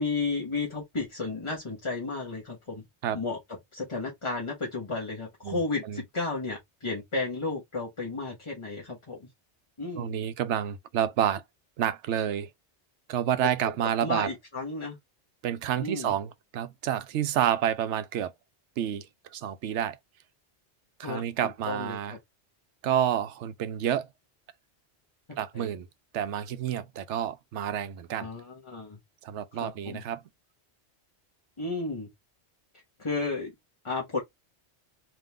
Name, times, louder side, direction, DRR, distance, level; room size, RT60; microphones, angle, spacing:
voice 1, 0.0-2.8 3.1-3.4 3.7-9.3 9.8-10.1 13.6-15.0 15.8-16.1 21.0-22.2 25.5-25.7 28.2-29.0 29.6-30.0 31.6-32.1 33.0-33.5 33.8-34.2, left 3 dB, 30° left, 1.1 m, -33 dB
voice 2, 5.4-6.0 10.0-11.4 11.8-12.5 13.1-14.3 15.4-18.3 18.8-20.0 21.0-22.2 22.8-24.1 25.4-25.9 26.1-28.3 29.2-30.2, right 10 dB, 85° right, 0.9 m, -29 dB
3.7 x 3.0 x 3.3 m
omnidirectional pair, 1.2 m